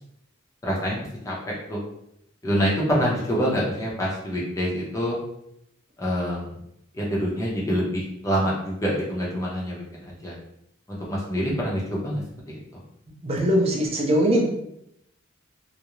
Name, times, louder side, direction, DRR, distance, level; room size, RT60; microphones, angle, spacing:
voice 1, 0.6-1.8 2.4-5.2 6.0-6.6 6.9-10.3 10.9-12.2 12.5-12.6, equal, 15° left, -4 dB, 0.6 m, -26 dB
voice 2, 13.2-14.5, equal, 30° right, -1 dB, 0.5 m, -21 dB
2.4 x 2.0 x 2.9 m, 0.79 s
head